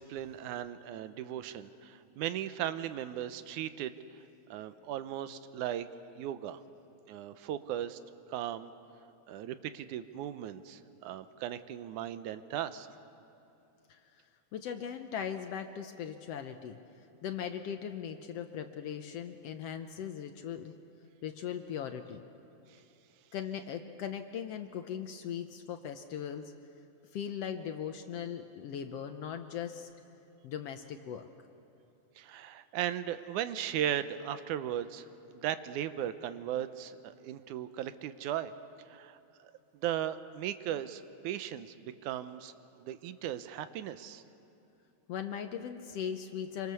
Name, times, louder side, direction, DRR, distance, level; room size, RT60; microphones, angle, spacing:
voice 1, 0.0-3.9 4.5-5.9 6.2-6.6 7.1-8.0 8.3-8.7 9.3-12.9 32.2-35.1 35.3-38.5 38.9-42.5 42.8-44.2, right 11 dB, 85° right, 12 dB, 2.2 m, -37 dB
voice 2, 14.5-16.8 17.2-20.7 21.2-22.2 23.3-26.5 27.1-29.9 30.4-31.3 45.1-46.7, left 8 dB, 70° left, 7 dB, 1.6 m, -39 dB
26.5 x 24.5 x 6.9 m, 2.8 s
omnidirectional pair, 3.5 m